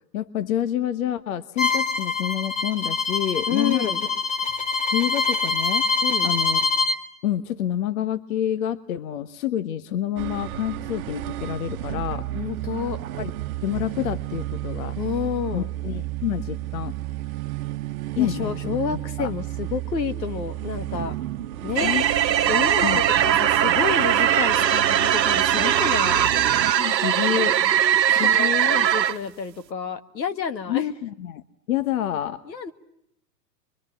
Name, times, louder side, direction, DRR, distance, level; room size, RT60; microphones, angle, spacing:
voice 1, 0.1-3.9 4.9-5.9 6.2-6.6 7.2-12.3 13.2-13.3 13.6-15.0 15.5-16.9 18.2-18.8 19.2-19.3 21.8-22.1 22.8-23.4 26.8-27.6 28.1-28.8 30.7-31.4 31.7-32.4, left 11 dB, 55° left, 12 dB, 1.2 m, -28 dB
Bowed string instrument, 1.6-7.0, left 4 dB, 15° left, 1.6 m, -24 dB
voice 2, 3.5-4.1 6.0-6.3 12.3-13.0 15.0-15.7 18.2-21.2 21.6-21.9 22.5-26.3 28.1-30.8 32.5-32.7, left 6 dB, 85° left, 9 dB, 2.0 m, -29 dB
sound 1, 10.2-26.7, right 14 dB, 55° right, 1.1 m, -32 dB
sound 2, 21.8-29.2, right 10 dB, 85° right, 1.2 m, -20 dB
25.0 x 24.0 x 8.9 m, 0.75 s
hypercardioid pair, 140°, 49 cm